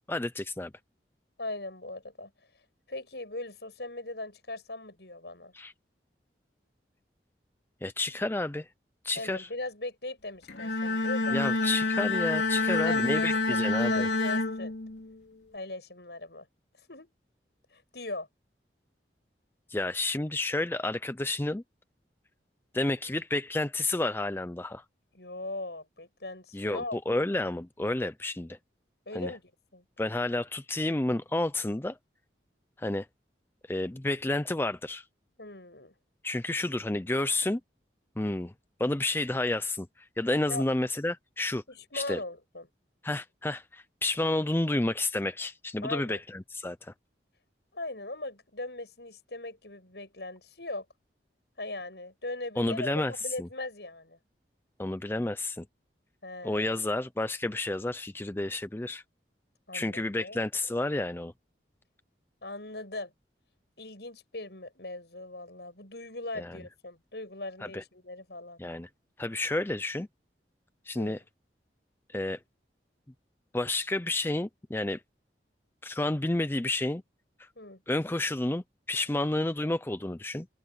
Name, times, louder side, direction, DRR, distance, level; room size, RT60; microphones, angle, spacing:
voice 1, 0.1-0.7 5.5-5.7 7.8-8.7 9.0-9.5 11.3-14.1 19.7-21.6 22.7-24.8 26.5-28.6 29.1-29.3 30.0-32.0 32.8-33.1 33.7-35.0 36.2-37.6 38.2-38.5 38.8-41.6 41.9-42.2 43.0-46.9 52.6-53.1 53.4-53.5 54.8-55.6 56.4-59.0 59.7-61.3 66.4-66.6 67.6-67.8 68.6-68.9 69.2-70.1 70.9-71.2 72.1-72.4 73.5-75.0 75.8-77.0 77.4-77.5 77.9-80.5, left 2 dB, 15° left, 0.5 m, -30 dB
voice 2, 1.4-2.3 2.9-5.5 9.1-11.4 12.6-14.7 15.5-16.5 16.9-17.1 17.7-18.3 25.1-27.0 29.1-29.4 29.7-29.8 35.4-35.9 40.5-40.6 41.7-42.7 45.8-46.2 47.7-50.9 51.6-54.2 56.2-56.7 59.7-60.4 62.4-63.1 63.8-68.6 70.9-71.2 77.6-77.8, left 2 dB, 70° left, 7.4 m, -39 dB
Bowed string instrument, 10.5-15.2, left 3 dB, 85° left, 3.1 m, -28 dB
open air
head